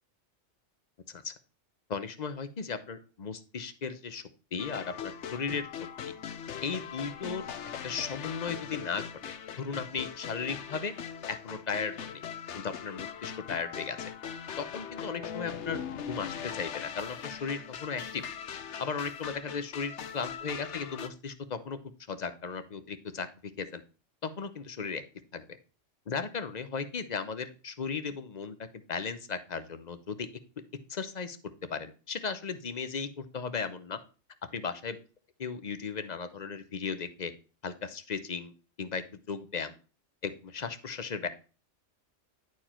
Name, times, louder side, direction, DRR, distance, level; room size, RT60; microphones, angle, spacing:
voice 1, 1.9-4.2 4.5-5.7 6.6-7.5 7.8-10.9 11.3-12.2 12.5-14.0 14.6-15.8 16.1-18.2 18.8-21.8 22.1-23.8 24.2-25.0 25.3-25.4 26.1-28.6 28.9-30.3 30.9-31.4 31.7-34.0 34.5-35.0 35.4-37.3 37.6-38.5 38.8-39.7 40.2-41.3, left 5 dB, 40° left, 11 dB, 0.8 m, -36 dB
sound 1, 4.6-21.1, left 8 dB, 70° left, 1.1 m, -40 dB
11.0 x 4.7 x 4.3 m, 0.35 s
omnidirectional pair, 1.2 m